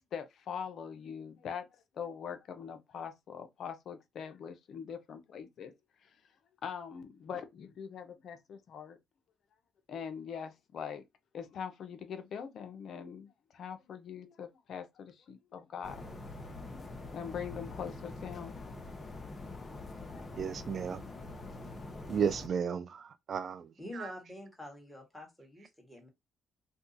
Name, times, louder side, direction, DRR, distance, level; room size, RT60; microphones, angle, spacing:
voice 1, 0.1-5.7 6.0-6.1 6.6-9.0 9.9-11.0 11.3-16.1 16.7-16.8 17.1-19.1 19.5-19.8 20.1-20.3, left 7 dB, 65° left, 0.6 m, -43 dB
sound 1, 15.8-22.5, left 2 dB, 30° left, 0.8 m, -44 dB
voice 2, 20.4-21.0 22.1-23.7 24.0-24.1, right 7 dB, 50° right, 0.3 m, -33 dB
voice 3, 23.8-26.1, left 1 dB, 5° left, 1.3 m, -46 dB
2.7 x 2.2 x 3.8 m
cardioid pair, 90°, 0 cm